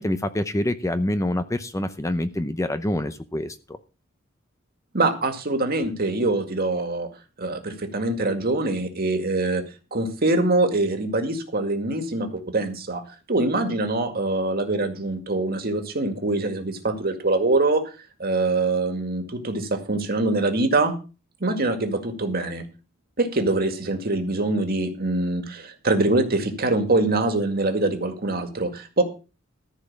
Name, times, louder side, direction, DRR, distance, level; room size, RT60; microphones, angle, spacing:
voice 1, 0.0-3.8, left 1 dB, 15° left, 11 dB, 0.7 m, -26 dB
voice 2, 4.9-7.1 7.4-9.6 9.9-13.0 13.3-17.9 18.2-20.9 21.4-22.6 23.2-29.0, right 2 dB, 50° right, 6 dB, 2.0 m, -24 dB
14.0 x 5.5 x 7.3 m, 0.34 s
head